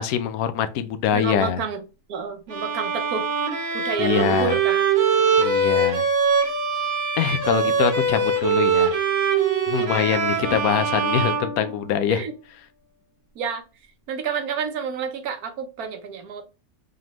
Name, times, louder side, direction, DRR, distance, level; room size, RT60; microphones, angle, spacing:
voice 1, 0.0-1.6 4.0-4.6 5.4-6.1 7.2-8.9 9.7-12.2, left 9 dB, 80° left, 1.0 m, -24 dB
voice 2, 1.1-1.8 2.1-3.3 3.7-4.8 7.6-7.9 9.8-10.2 10.5-10.6 12.1-12.3 13.4-13.6 14.1-16.4, right 5 dB, 85° right, 1.3 m, -29 dB
Bowed string instrument, 2.5-12.2, right 4 dB, 55° right, 1.3 m, -23 dB
3.9 x 3.3 x 2.9 m
omnidirectional pair, 1.5 m